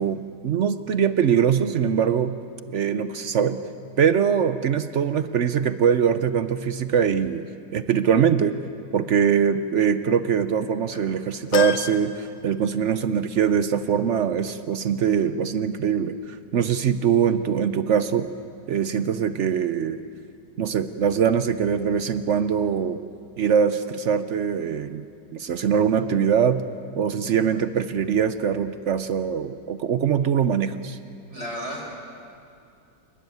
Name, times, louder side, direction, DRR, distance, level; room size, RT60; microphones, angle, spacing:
voice 1, 0.0-2.4 2.7-3.6 4.0-7.4 7.7-8.6 8.9-18.3 18.7-20.0 20.6-23.0 23.4-25.1 25.3-26.6 27.0-31.0, right 7 dB, 60° right, 11 dB, 0.7 m, -22 dB
voice 2, 10.9-11.2 31.3-31.8, equal, 40° right, -1 dB, 5.5 m, -34 dB
sound 1, 11.5-13.2 13.6-13.7 14.9-15.0, left 7 dB, 90° left, 1.7 m, -32 dB
29.0 x 13.0 x 9.3 m, 2.5 s
omnidirectional pair, 1.9 m